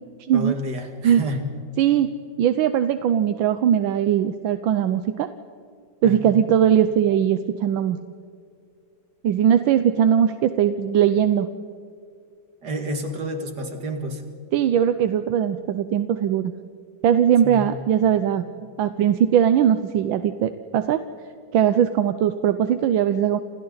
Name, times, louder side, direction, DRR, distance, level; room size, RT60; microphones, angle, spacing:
voice 1, 0.3-1.5 6.0-6.4 12.6-14.3 17.4-17.8, equal, 60° right, 4 dB, 2.8 m, -30 dB
voice 2, 1.8-5.3 6.0-8.0 9.2-11.5 14.5-16.5 17.0-18.5 18.8-21.0 21.5-23.4, right 9 dB, 80° right, 10 dB, 1.5 m, -20 dB
29.0 x 27.5 x 4.0 m, 2.2 s
omnidirectional pair, 2.1 m